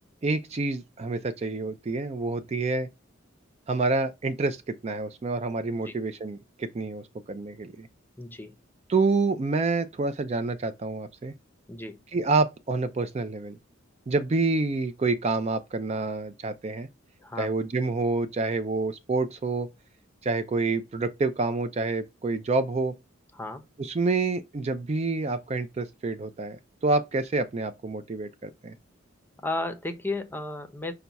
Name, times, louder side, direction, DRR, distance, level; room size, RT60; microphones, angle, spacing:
voice 1, 0.2-2.9 3.7-7.9 8.9-11.3 12.1-13.6 14.1-16.9 17.4-19.7 20.2-22.9 23.8-28.7, right 3 dB, 30° right, 0.4 m, -28 dB
voice 2, 8.2-8.6 11.7-12.0 17.2-17.5 23.3-23.6 29.4-30.9, left 2 dB, 10° left, 0.6 m, -33 dB
5.7 x 2.2 x 3.9 m
head